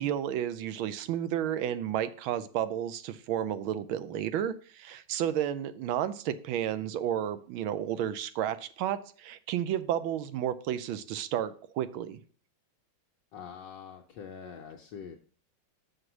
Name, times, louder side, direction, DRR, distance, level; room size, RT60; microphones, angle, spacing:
voice 1, 0.0-12.2, right 10 dB, 90° right, 13 dB, 1.5 m, -32 dB
voice 2, 13.3-15.2, left 7 dB, 70° left, 3 dB, 1.3 m, -44 dB
6.1 x 5.2 x 6.0 m, 0.43 s
omnidirectional pair, 2.2 m